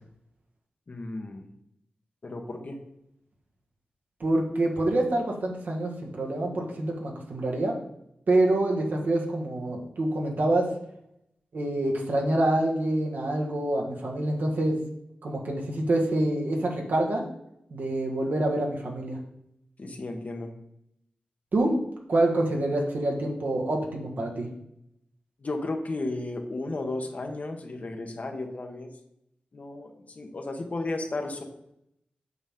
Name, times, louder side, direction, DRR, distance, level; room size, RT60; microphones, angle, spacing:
voice 1, 0.9-1.5 2.2-2.8 19.8-20.5 25.4-28.9 29.5-31.4, left 2 dB, 50° left, 4 dB, 1.2 m, -34 dB
voice 2, 4.2-7.7 8.3-10.7 11.5-14.7 15.2-17.2 17.7-19.2 21.5-21.7 22.1-24.5, right 1 dB, 65° right, -1 dB, 1.7 m, -26 dB
8.1 x 6.0 x 3.8 m, 0.78 s
cardioid pair, 60°, 3 cm